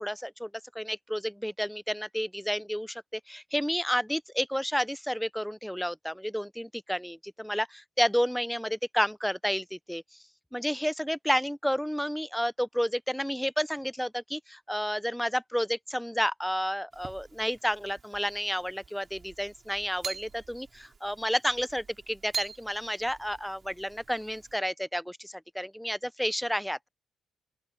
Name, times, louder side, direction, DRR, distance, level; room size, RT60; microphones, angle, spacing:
voice 1, 0.0-3.0 3.3-10.0 10.5-26.9, equal, ahead, 0.5 m, -31 dB
sound 1, 16.9-24.6, right 5 dB, 35° right, 5.7 m, -44 dB
open air
cardioid pair, 90°, 0 cm